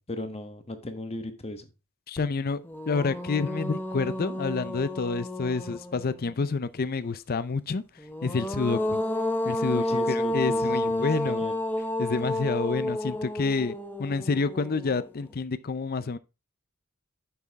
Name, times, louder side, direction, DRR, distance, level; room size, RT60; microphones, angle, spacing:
voice 1, 0.0-1.7 9.7-10.6 11.0-11.6, left 1 dB, 30° left, 1.2 m, -37 dB
voice 2, 2.1-7.8 8.2-9.0 9.4-11.4 12.0-16.2, left 4 dB, 45° left, 0.5 m, -28 dB
sound 1, 2.2-2.3 2.6-6.3 8.0-15.2, left 1 dB, 10° left, 0.9 m, -31 dB
7.0 x 6.3 x 3.5 m
head